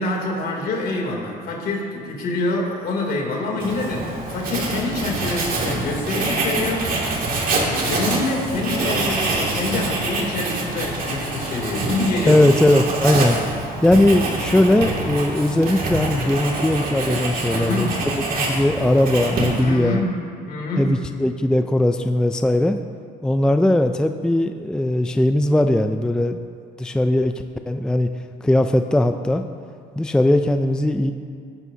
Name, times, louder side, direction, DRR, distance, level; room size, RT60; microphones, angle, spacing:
voice 1, 0.0-6.9 7.5-12.4 17.5-18.0 19.6-20.2 20.5-20.9, left 2 dB, 65° left, -1 dB, 3.0 m, -26 dB
Writing, 3.6-19.8, right 2 dB, 55° right, 2.4 m, -25 dB
voice 2, 12.3-13.4 13.8-20.0 20.7-22.8 23.2-26.5 26.8-27.3 27.7-28.1 28.4-29.4 30.0-31.1, left 1 dB, 5° left, 7 dB, 0.4 m, -19 dB
17.0 x 10.5 x 2.8 m, 2.3 s
cardioid pair, 110°, 17 cm